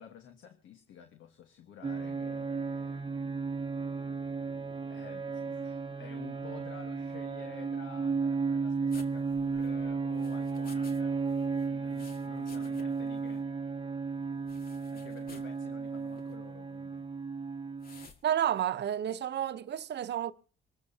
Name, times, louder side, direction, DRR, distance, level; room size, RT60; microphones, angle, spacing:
voice 1, 0.0-3.3 4.4-4.5 4.9-11.2 11.7-13.5 14.9-17.0, left 8 dB, 75° left, 1.5 m, -52 dB
sound 1, 1.8-18.1, right 4 dB, 25° right, 1.0 m, -34 dB
sound 2, 8.9-11.0 11.3-13.1 13.3-13.4 14.5-15.6 16.1-16.3 17.8-18.2, left 3 dB, 50° left, 1.9 m, -55 dB
voice 2, 18.2-20.3, right 10 dB, 60° right, 0.9 m, -30 dB
26.0 x 14.0 x 2.8 m
cardioid pair, 90°, 20 cm